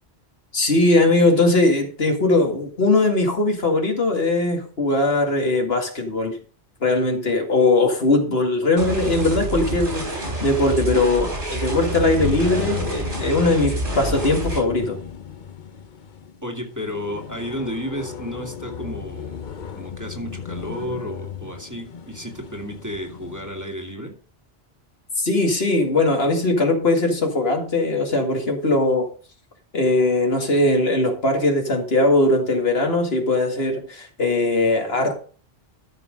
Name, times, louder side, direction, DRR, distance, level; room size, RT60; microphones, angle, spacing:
voice 1, 0.5-6.4 6.8-15.0 25.2-29.1 29.7-35.2, left 2 dB, 75° left, 3 dB, 2.3 m, -20 dB
sound 1, 8.8-14.6, right 1 dB, 50° right, 4.1 m, -28 dB
sound 2, 11.7-23.6, left 7 dB, 50° left, 0.9 m, -35 dB
voice 2, 16.4-19.4 19.7-24.2, equal, 15° right, 1 dB, 2.5 m, -32 dB
13.0 x 6.0 x 5.2 m, 0.39 s
omnidirectional pair, 1.1 m